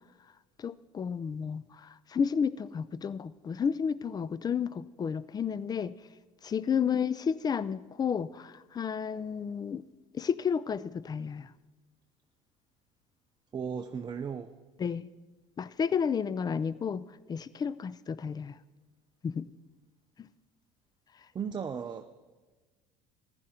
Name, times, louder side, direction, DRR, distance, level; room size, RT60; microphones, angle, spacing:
voice 1, 0.6-5.9 6.4-9.8 10.1-11.5 14.8-15.1 15.6-18.5 19.2-19.5 20.2-20.3, left 7 dB, 25° left, 19 dB, 0.4 m, -32 dB
voice 2, 13.5-14.5 21.3-22.0, right 6 dB, 30° right, 7 dB, 0.6 m, -35 dB
15.0 x 10.5 x 3.8 m, 1.3 s
hypercardioid pair, 65°, 16 cm